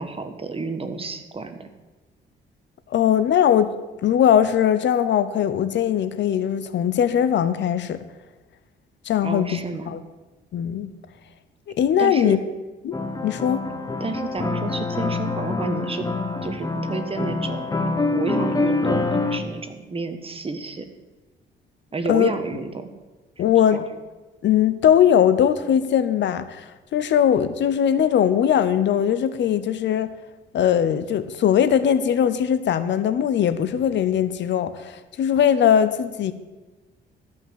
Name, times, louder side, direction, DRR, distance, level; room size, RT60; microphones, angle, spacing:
voice 1, 0.0-1.6 9.2-10.0 12.0-12.4 14.0-16.1 16.4-17.7 18.1-20.8 21.9-22.9 23.7-23.8, right 3 dB, 30° right, 8 dB, 1.3 m, -30 dB
voice 2, 2.9-3.7 4.0-8.0 9.0-9.6 9.9-10.0 10.5-10.9 11.8-12.4 12.8-12.9 13.2-13.6 22.1-22.3 23.4-23.9 24.4-30.1 30.5-36.3, left 9 dB, 65° left, 13 dB, 0.8 m, -20 dB
sound 1, 12.9-19.4, left 3 dB, 20° left, 1.0 m, -26 dB
13.0 x 5.8 x 7.8 m, 1.2 s
cardioid pair, 90°, 20 cm